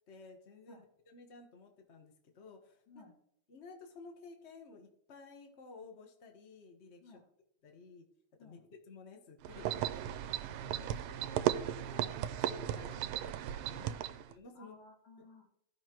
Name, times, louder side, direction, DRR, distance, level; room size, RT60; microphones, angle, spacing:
voice 1, 0.1-3.0 3.5-7.0 7.6-8.1 8.4-10.8 11.8-13.9 14.3-14.8, left 4 dB, 35° left, 4 dB, 1.4 m, -54 dB
sound 1, 9.4-14.3, right 11 dB, 80° right, 1.5 m, -36 dB
voice 2, 10.9-11.7 13.9-14.1 14.5-15.5, left 1 dB, 65° left, 0 dB, 3.2 m, -57 dB
16.0 x 5.7 x 3.0 m, 0.75 s
omnidirectional pair, 2.4 m